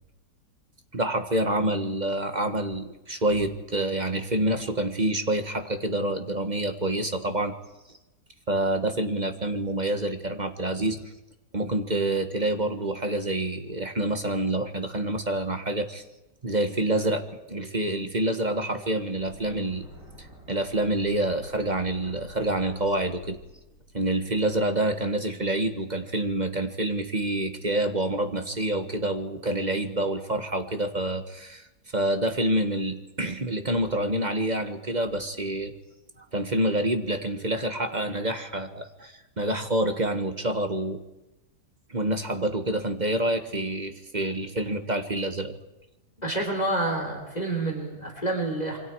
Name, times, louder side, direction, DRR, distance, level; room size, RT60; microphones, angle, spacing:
voice 1, 0.9-7.5 8.5-11.0 11.5-16.0 16.4-19.9 20.2-23.4 23.9-31.7 31.9-35.7 36.3-41.0 41.9-45.6, right 1 dB, 25° right, 7 dB, 1.6 m, -27 dB
sound 1, 19.1-25.1, equal, 90° right, 8.3 m, -49 dB
voice 2, 46.2-48.8, right 2 dB, 25° left, 1 dB, 4.1 m, -28 dB
27.0 x 24.5 x 4.8 m, 1.0 s
omnidirectional pair, 1.8 m